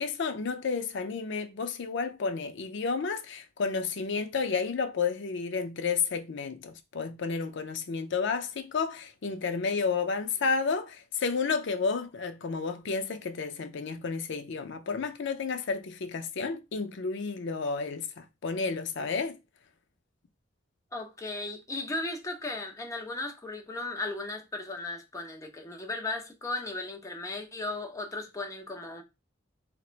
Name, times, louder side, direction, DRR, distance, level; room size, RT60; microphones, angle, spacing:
voice 1, 0.0-19.4, left 5 dB, 70° left, 0.5 m, -31 dB
voice 2, 20.9-29.0, left 2 dB, 15° left, 0.6 m, -36 dB
4.0 x 2.1 x 2.4 m
head